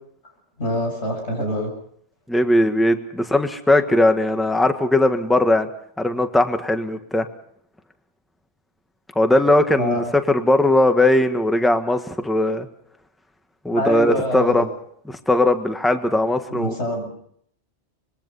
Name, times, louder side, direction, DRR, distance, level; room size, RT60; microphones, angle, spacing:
voice 1, 0.6-1.7 9.8-10.0 13.7-14.6 16.5-17.1, left 1 dB, 70° left, 2 dB, 7.7 m, -25 dB
voice 2, 2.3-5.7 6.0-7.3 9.1-12.7 13.6-14.7 15.1-16.7, left 1 dB, ahead, 7 dB, 1.5 m, -19 dB
25.5 x 22.5 x 5.6 m, 0.66 s
omnidirectional pair, 1.2 m